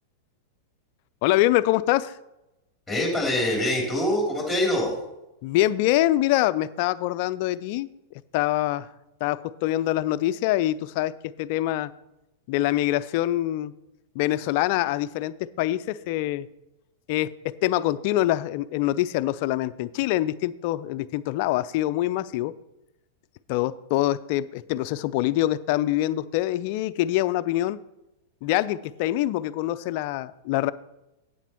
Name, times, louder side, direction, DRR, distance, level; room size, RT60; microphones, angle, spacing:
voice 1, 1.2-2.2 5.4-7.9 8.3-8.9 9.2-11.9 12.5-13.7 14.1-16.5 17.1-22.5 23.5-27.8 28.4-30.7, left 15 dB, 55° left, 16 dB, 0.4 m, -25 dB
voice 2, 2.9-4.9, left 1 dB, ahead, -1 dB, 3.2 m, -24 dB
9.0 x 8.7 x 4.4 m, 0.93 s
hypercardioid pair, 105°, 0 cm